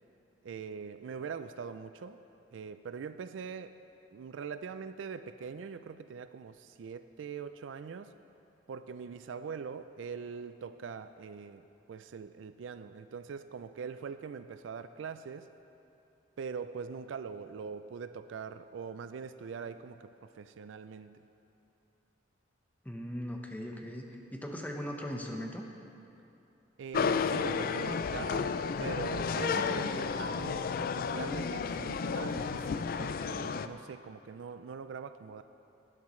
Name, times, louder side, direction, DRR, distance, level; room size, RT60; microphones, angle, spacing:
voice 1, 0.4-2.2 2.5-3.8 4.1-8.1 8.7-15.5 16.4-21.2 26.8-28.5 28.8-35.4, right 6 dB, 80° right, 11 dB, 0.4 m, -42 dB
voice 2, 22.8-25.6, equal, 10° left, 1 dB, 1.0 m, -39 dB
sound 1, 26.9-33.7, left 5 dB, 50° left, 0.3 m, -32 dB
19.0 x 10.5 x 3.2 m, 2.8 s
head